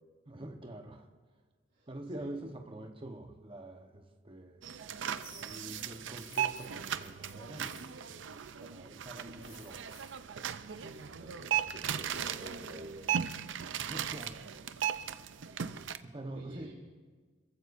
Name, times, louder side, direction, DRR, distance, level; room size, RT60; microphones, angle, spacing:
voice 1, 0.3-1.1 1.9-4.6 5.2-9.9 13.8-14.4 16.0-16.7, right 1 dB, 30° right, 1.1 m, -46 dB
sound 1, 4.6-16.0, right 9 dB, 85° right, 0.6 m, -37 dB
sound 2, 5.2-8.2 9.4-10.2, left 3 dB, 20° left, 3.3 m, -56 dB
voice 2, 10.7-13.1 15.7-15.9 16.3-16.7, right 1 dB, 65° right, 2.9 m, -49 dB
28.0 x 15.0 x 2.7 m
head